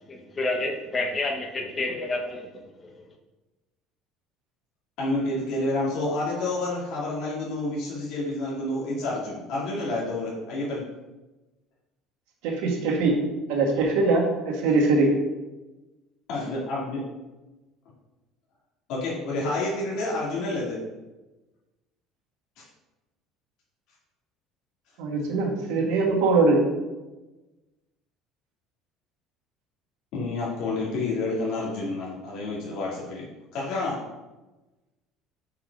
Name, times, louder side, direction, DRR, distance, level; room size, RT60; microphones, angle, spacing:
voice 1, 0.1-2.5 2.8-3.1, left 2 dB, 25° left, 2 dB, 0.9 m, -29 dB
voice 2, 5.0-10.8 16.3-17.0 18.9-20.8 22.6-22.7 30.1-33.2 33.5-34.0, left 2 dB, 65° left, -5 dB, 2.2 m, -29 dB
voice 3, 12.4-13.2 13.5-15.1 25.0-26.6, right 3 dB, 80° right, -1 dB, 1.7 m, -22 dB
5.6 x 4.8 x 5.2 m, 1.1 s
cardioid pair, 120°, 0 cm